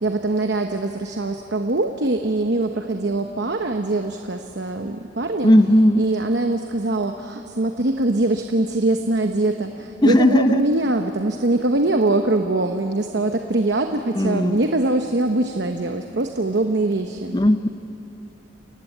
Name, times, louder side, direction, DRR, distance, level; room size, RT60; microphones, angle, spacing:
voice 1, 0.0-5.5 6.0-17.4, right 2 dB, 60° right, 5 dB, 0.9 m, -22 dB
voice 2, 5.4-6.0 10.0-10.6 14.1-14.6 17.3-17.7, left 1 dB, 20° left, 11 dB, 0.6 m, -16 dB
29.0 x 15.5 x 9.2 m, 2.9 s
head